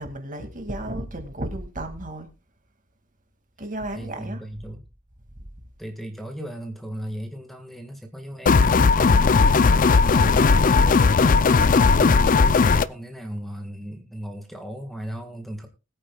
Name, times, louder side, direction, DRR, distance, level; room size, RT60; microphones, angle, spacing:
voice 1, 0.0-2.3 3.6-4.4 5.4-5.5, right 1 dB, 40° right, 2.3 m, -33 dB
voice 2, 3.9-4.8 5.8-9.6 9.9-15.7, equal, ahead, 1.7 m, -36 dB
sound 1, 8.5-12.9, left 4 dB, 40° left, 0.5 m, -17 dB
21.0 x 9.0 x 2.3 m
head